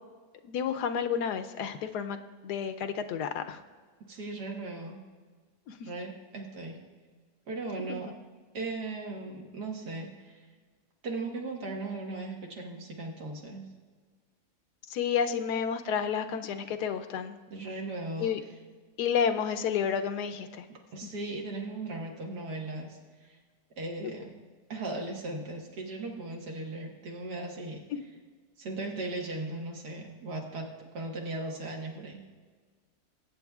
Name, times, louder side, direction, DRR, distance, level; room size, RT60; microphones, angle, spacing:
voice 1, 0.4-2.2 2.4-3.6 5.7-5.9 7.9-8.1 14.9-17.4 18.2-18.4 19.0-20.6 21.0-21.1, left 7 dB, 85° left, 8 dB, 1.2 m, -30 dB
voice 2, 4.1-5.0 5.8-6.8 7.5-8.1 8.5-10.4 11.0-13.7 17.5-18.4 20.7-23.4 23.8-24.3 24.7-27.8 28.6-30.7 30.9-32.3, right 2 dB, 90° right, 0 dB, 2.0 m, -37 dB
21.0 x 8.5 x 2.4 m, 1.5 s
omnidirectional pair, 1.7 m